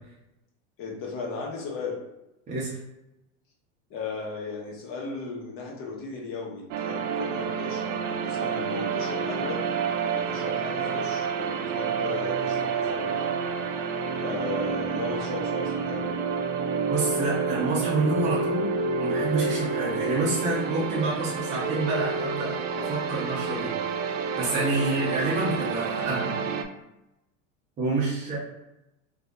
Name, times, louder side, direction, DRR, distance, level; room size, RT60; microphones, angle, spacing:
voice 1, 0.8-2.0 3.9-9.6 10.0-13.4 14.2-16.2, left 4 dB, 35° left, -2 dB, 1.0 m, -36 dB
voice 2, 2.5-2.8 16.9-18.7 19.0-23.7 24.4-26.3 27.8-28.4, right 2 dB, 20° right, -7 dB, 0.7 m, -28 dB
sound 1, 6.7-26.6, right 5 dB, 80° right, 0.6 m, -29 dB
2.8 x 2.6 x 3.5 m, 0.90 s
supercardioid pair, 155°, 37 cm